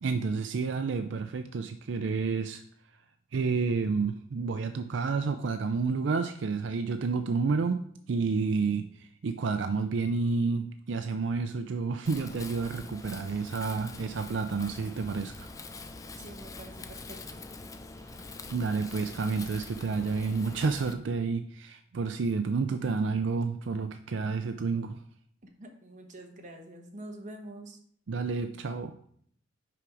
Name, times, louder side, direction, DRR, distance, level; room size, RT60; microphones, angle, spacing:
voice 1, 0.0-2.6 3.3-15.5 18.5-25.0 28.1-29.0, right 4 dB, 75° right, 8 dB, 0.4 m, -30 dB
Wind, 12.1-20.9, left 3 dB, 15° left, 0.4 m, -44 dB
voice 2, 16.2-17.4 25.6-27.8, right 1 dB, 40° right, 2 dB, 1.1 m, -46 dB
5.8 x 5.1 x 4.8 m, 0.63 s
head